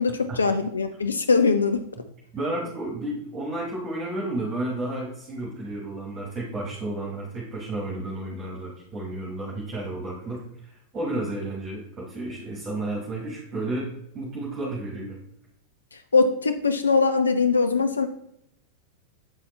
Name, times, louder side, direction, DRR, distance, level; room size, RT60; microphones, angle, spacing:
voice 1, 0.0-1.9 16.1-18.1, left 4 dB, 75° left, 8 dB, 0.4 m, -21 dB
voice 2, 2.3-13.9 14.1-15.2, right 2 dB, 25° right, -3 dB, 1.7 m, -32 dB
7.7 x 4.1 x 3.2 m, 0.74 s
figure-of-eight pair, 90°, 0 cm